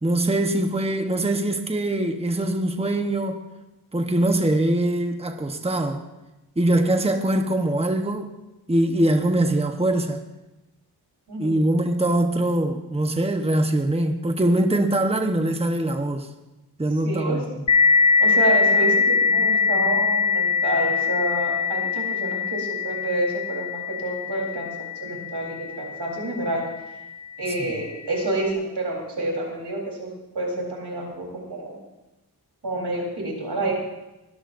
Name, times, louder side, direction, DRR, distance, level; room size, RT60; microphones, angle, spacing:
voice 1, 0.0-3.4 3.9-6.0 6.6-8.3 8.7-10.2 11.4-16.3 16.8-17.6, right 1 dB, 15° right, 5 dB, 1.1 m, -22 dB
voice 2, 17.0-17.4 18.2-26.6 27.4-31.8 32.6-33.7, right 1 dB, 85° right, -2 dB, 4.1 m, -28 dB
sound 1, 17.7-26.9, left 5 dB, 50° left, 0.8 m, -22 dB
21.0 x 13.5 x 2.6 m, 0.99 s
wide cardioid pair, 55°, 39 cm